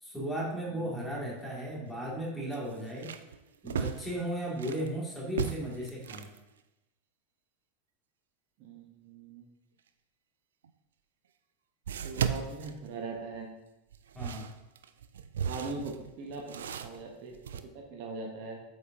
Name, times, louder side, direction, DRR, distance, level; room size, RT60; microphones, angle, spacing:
voice 1, 0.0-3.1 3.6-6.3 14.1-14.5, equal, 5° left, -4 dB, 2.3 m, -35 dB
cardboard box, 1.3-1.5 1.9-2.0 2.5-4.9 5.3-6.4 10.6-10.7 11.9-13.4 13.9-17.6, right 8 dB, 70° right, 0.3 m, -36 dB
voice 2, 8.6-9.4 12.0-13.5 15.4-18.6, right 3 dB, 50° right, 1 dB, 1.0 m, -41 dB
7.9 x 4.9 x 2.8 m, 0.97 s
figure-of-eight pair, 85°, 0 cm